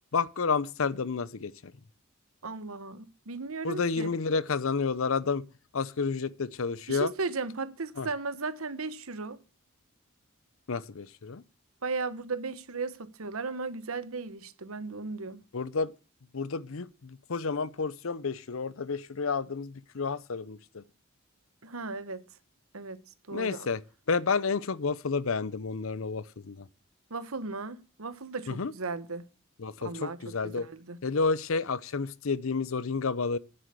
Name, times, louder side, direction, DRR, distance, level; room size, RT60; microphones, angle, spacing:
voice 1, 0.1-1.7 3.6-5.4 5.7-7.1 8.0-8.1 10.7-11.4 15.5-15.9 16.3-20.8 23.3-23.8 24.1-26.7 28.5-28.7 29.6-30.7 31.0-33.4, left 4 dB, 75° left, 0.7 m, -30 dB
voice 2, 2.4-4.1 6.9-9.4 11.8-15.4 21.6-22.2 22.7-23.0 23.3-23.7 27.1-29.2 29.8-31.0, right 3 dB, 85° right, 1.1 m, -36 dB
10.0 x 8.0 x 6.7 m
head